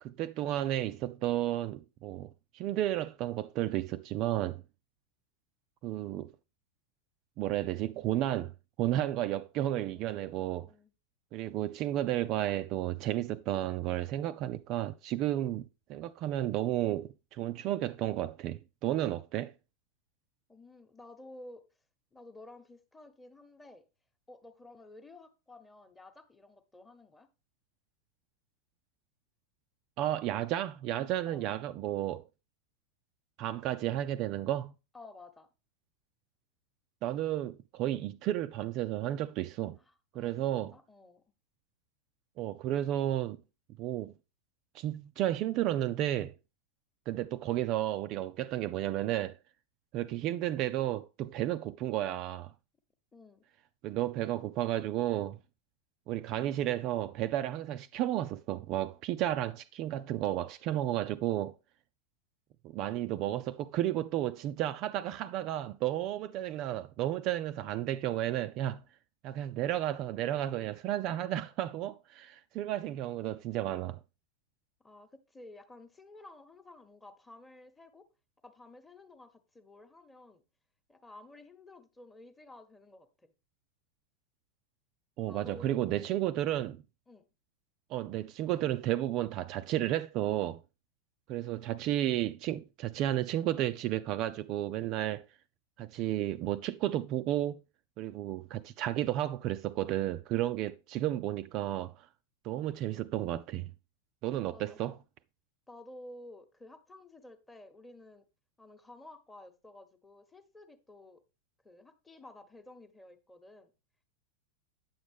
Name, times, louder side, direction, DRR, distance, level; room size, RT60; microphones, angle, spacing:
voice 1, 0.0-4.6 5.8-6.3 7.4-8.5 8.8-10.7 11.3-19.5 30.0-32.2 33.4-34.7 37.0-39.8 40.1-40.7 42.4-43.4 43.8-44.1 44.7-46.3 47.1-49.4 49.9-52.5 53.8-55.4 56.1-61.5 62.6-68.8 69.2-74.0 85.2-86.8 87.9-90.6 91.3-95.2 95.8-97.6 98.0-102.1 102.4-103.7 104.2-105.0, right 13 dB, 40° right, 0.3 m, -32 dB
voice 2, 9.9-10.9 20.5-21.7 22.1-23.9 24.3-27.3 31.2-31.4 34.9-35.5 39.8-41.2 53.1-53.4 74.8-78.1 78.4-80.4 80.9-83.3 85.2-86.3 87.1-87.3 104.4-104.9 105.7-108.3 108.6-111.2 111.6-113.7, left 2 dB, 10° left, 1.0 m, -53 dB
9.3 x 7.1 x 3.5 m
figure-of-eight pair, 90°, 0 cm